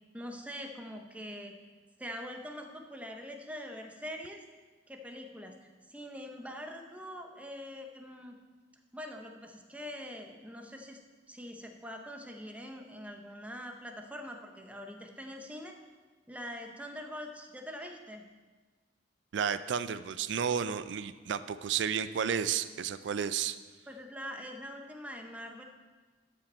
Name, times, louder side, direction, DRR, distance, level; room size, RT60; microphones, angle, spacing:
voice 1, 0.1-1.5 2.0-4.4 4.9-8.4 8.9-11.0 11.3-15.8 16.3-18.2 23.9-25.6, equal, 10° right, 3 dB, 0.7 m, -43 dB
voice 2, 19.3-23.6, right 7 dB, 70° right, 13 dB, 0.4 m, -32 dB
13.0 x 5.2 x 4.3 m, 1.3 s
head